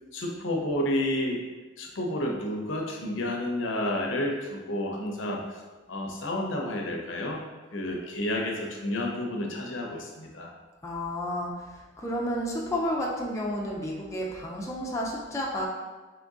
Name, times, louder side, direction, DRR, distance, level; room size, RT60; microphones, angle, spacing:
voice 1, 0.1-1.4 1.8-5.6 5.9-7.4 7.7-10.5, left 1 dB, 65° left, 0 dB, 0.7 m, -30 dB
voice 2, 10.8-11.7 12.0-15.7, equal, 15° left, -3 dB, 0.5 m, -31 dB
3.8 x 3.4 x 3.6 m, 1.3 s
head